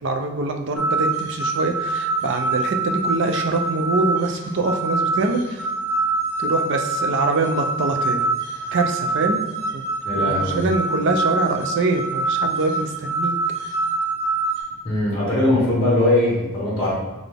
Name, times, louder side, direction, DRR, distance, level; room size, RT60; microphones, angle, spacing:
voice 1, 0.0-5.7 6.4-8.2 8.7-9.4 9.7-9.8 10.1-13.3, right 3 dB, 55° right, 4 dB, 0.4 m, -24 dB
sound 1, 0.8-14.6, right 3 dB, 90° right, 1.4 m, -25 dB
voice 2, 10.0-10.6 14.8-16.9, left 1 dB, 20° left, -6 dB, 1.1 m, -20 dB
4.0 x 3.3 x 3.4 m, 1.2 s
head